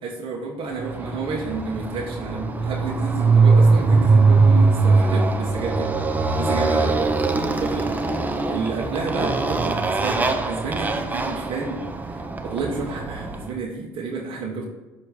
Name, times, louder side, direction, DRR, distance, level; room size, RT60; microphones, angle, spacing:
voice 1, 0.0-5.9 6.4-7.1 7.5-8.0 8.5-11.8 12.1-12.2 12.5-14.7, right 4 dB, 60° right, -2 dB, 1.0 m, -30 dB
Motorcycle, 0.8-13.5, right 3 dB, 15° right, 0.6 m, -21 dB
7.3 x 2.9 x 5.0 m, 1.2 s
supercardioid pair, 90°, 10 cm